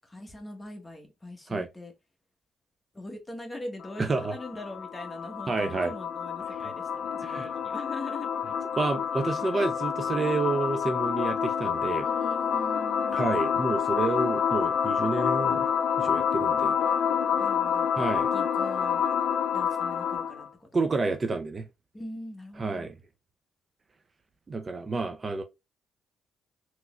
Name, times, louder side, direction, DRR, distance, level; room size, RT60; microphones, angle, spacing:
voice 1, 0.1-1.9 2.9-8.3 12.0-13.2 17.4-17.9 18.3-19.1 19.5-20.7 21.9-22.9, left 1 dB, 15° left, 1.1 m, -42 dB
sound 1, 3.8-20.5, left 7 dB, 75° left, 0.3 m, -28 dB
voice 2, 4.0-4.4 5.5-5.9 6.6-6.7 7.2-7.5 8.8-12.1 13.1-15.6 16.0-16.8 18.0-18.3 20.7-21.7 22.6-23.0 24.5-25.4, right 3 dB, 35° right, 0.5 m, -29 dB
3.7 x 3.0 x 2.3 m
cardioid pair, 90°, 0 cm